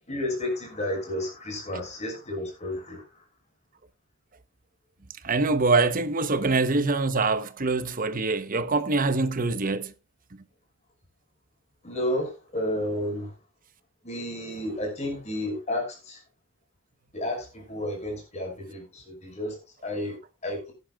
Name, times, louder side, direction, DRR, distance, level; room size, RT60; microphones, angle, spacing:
voice 1, 0.1-3.0 11.8-13.3 14.0-16.2 17.1-20.7, left 1 dB, 35° left, 5.9 m, -32 dB
voice 2, 5.2-9.9, right 3 dB, 45° right, 1.0 m, -24 dB
18.0 x 10.5 x 2.4 m
head